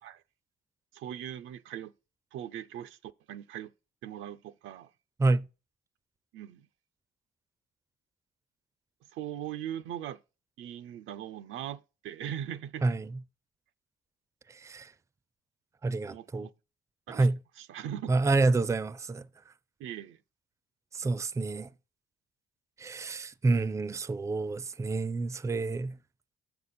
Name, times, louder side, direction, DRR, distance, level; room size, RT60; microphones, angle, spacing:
voice 1, 0.9-1.9 2.3-3.7 4.0-4.9 6.3-6.7 9.1-10.2 10.6-12.8 16.1-16.5 17.1-17.3 17.6-18.1 19.8-20.2, right 10 dB, 80° right, 0.5 m, -40 dB
voice 2, 12.8-13.2 14.5-14.9 15.8-16.5 17.1-17.4 18.1-19.5 20.9-21.7 22.8-26.0, right 3 dB, 15° right, 0.4 m, -28 dB
7.4 x 6.9 x 4.1 m
cardioid pair, 90°, 20 cm